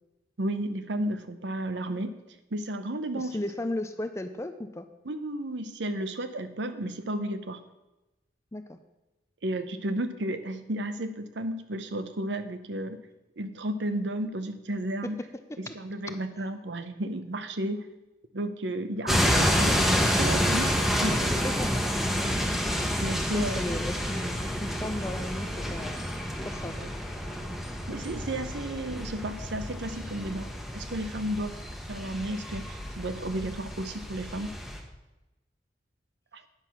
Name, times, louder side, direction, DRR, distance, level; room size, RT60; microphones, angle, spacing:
voice 1, 0.4-2.2 2.5-3.4 5.1-7.6 9.4-13.0 13.4-15.2 15.6-17.9 18.3-19.8 20.1-21.3 23.0-23.8 26.8-26.9 27.9-31.6 31.9-34.6 36.3-36.4, right 1 dB, 80° right, 10 dB, 0.8 m, -33 dB
voice 2, 3.2-4.9 8.5-8.8 15.7-15.8 21.1-22.0 23.3-26.1 26.4-26.8 27.1-27.2, left 1 dB, 15° left, 9 dB, 0.4 m, -36 dB
sound 1, 19.1-34.8, equal, ahead, 1.0 m, -29 dB
9.6 x 6.5 x 5.8 m, 1.0 s
head